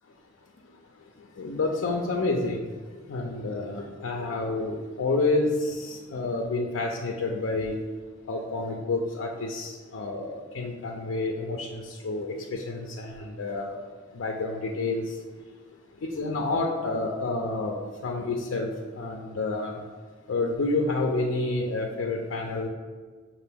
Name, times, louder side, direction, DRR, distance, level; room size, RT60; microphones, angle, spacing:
voice 1, 1.4-2.7 3.1-7.8 8.3-13.8 14.1-15.1 16.0-18.7 18.9-19.8 20.3-22.7, left 2 dB, 70° left, 0 dB, 0.4 m, -29 dB
5.9 x 2.5 x 3.4 m, 1.5 s
head